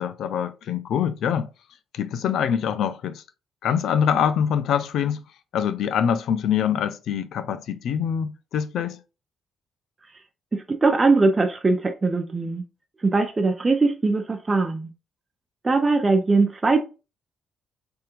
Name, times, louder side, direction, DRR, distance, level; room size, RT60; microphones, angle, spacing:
voice 1, 0.0-1.5 1.9-3.2 3.6-5.2 5.5-9.0, left 8 dB, 75° left, 0.4 m, -24 dB
voice 2, 10.5-12.6 13.0-14.9 15.6-16.8, right 3 dB, 25° right, 0.5 m, -21 dB
3.5 x 3.3 x 3.0 m
cardioid pair, 90°, 0 cm